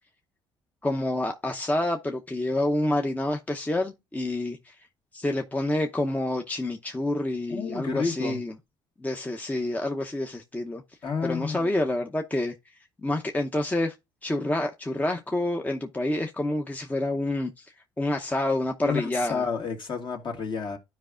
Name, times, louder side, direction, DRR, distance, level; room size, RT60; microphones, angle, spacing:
voice 1, 0.8-4.7 5.1-8.5 9.0-10.8 11.2-12.5 13.0-13.9 14.2-19.5, left 1 dB, 15° left, 0.8 m, -28 dB
voice 2, 7.5-8.4 11.0-11.7 18.8-20.8, left 5 dB, 45° left, 1.9 m, -30 dB
12.5 x 4.8 x 2.5 m
supercardioid pair, 70°, 11 cm